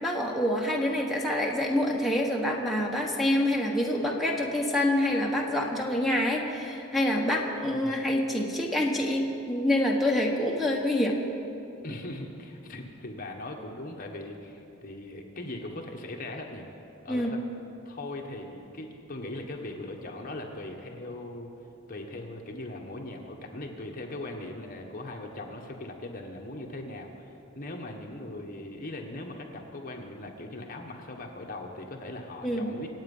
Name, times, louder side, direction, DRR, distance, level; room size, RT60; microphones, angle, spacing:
voice 1, 0.0-11.1 17.1-17.3 32.4-32.7, left 1 dB, ahead, -1 dB, 1.4 m, -26 dB
voice 2, 11.8-17.4 17.8-21.5 21.9-33.0, left 1 dB, 40° left, 1 dB, 1.4 m, -40 dB
26.5 x 8.8 x 5.5 m, 2.8 s
head